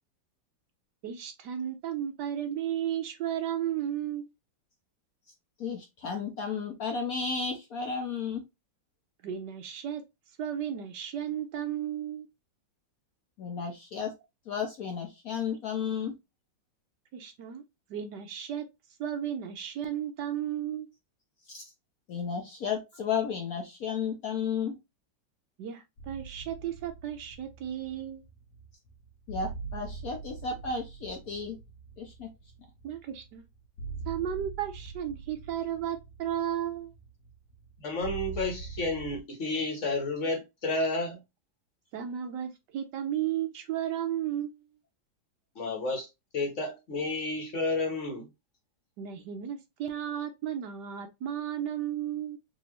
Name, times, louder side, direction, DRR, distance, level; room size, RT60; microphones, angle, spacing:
voice 1, 1.0-4.3 9.2-10.0 10.4-12.3 17.1-17.6 17.9-18.7 19.0-20.9 25.6-28.2 32.8-33.4 34.1-36.9 41.9-44.7 49.0-52.4, right 10 dB, 70° right, 1.1 m, -34 dB
voice 2, 5.6-8.4 13.4-14.1 14.5-16.1 21.5-21.6 22.1-24.8 29.3-31.6 32.0-32.3, left 6 dB, 60° left, 1.0 m, -33 dB
sound 1, 26.0-39.2, right 4 dB, 85° left, 1.6 m, -43 dB
voice 3, 37.8-41.2 45.5-46.1 46.3-48.3, left 2 dB, 45° left, 1.2 m, -31 dB
4.0 x 2.7 x 2.9 m
omnidirectional pair, 2.1 m